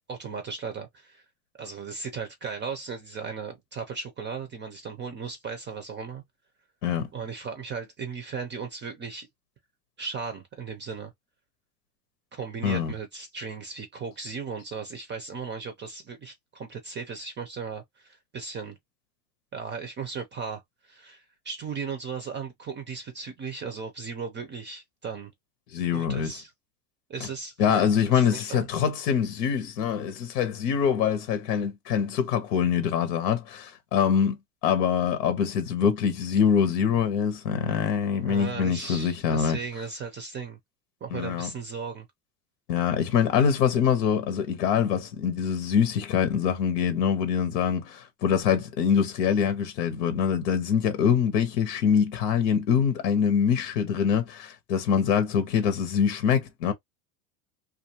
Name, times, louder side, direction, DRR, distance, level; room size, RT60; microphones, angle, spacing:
voice 1, 0.1-1.2 1.6-6.2 7.1-9.3 10.0-11.1 12.3-18.8 19.5-25.3 25.9-26.5 27.1-28.7 38.1-40.6 41.0-42.1, right 5 dB, 25° right, 0.4 m, -36 dB
voice 2, 12.6-12.9 25.7-26.4 27.6-34.4 34.6-39.6 41.1-41.5 42.7-56.7, left 7 dB, 90° left, 0.9 m, -24 dB
2.5 x 2.2 x 2.7 m
supercardioid pair, 115°, 47 cm